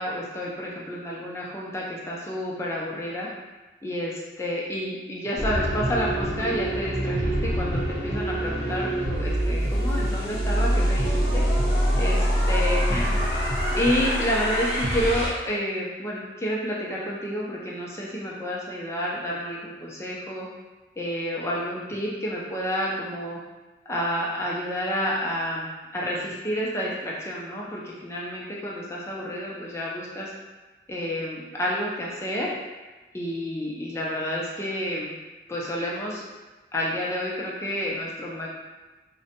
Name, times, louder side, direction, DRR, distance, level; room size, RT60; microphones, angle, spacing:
voice 1, 0.0-3.3 3.8-11.4 12.0-13.4 13.7-20.5 21.0-23.4 23.9-30.3 30.9-32.5 33.1-35.1 35.5-36.2 36.7-38.5, equal, 15° left, -5 dB, 0.4 m, -29 dB
sound 1, 5.4-15.3, equal, 65° left, 0.9 m, -25 dB
3.7 x 2.1 x 2.8 m, 1.2 s
head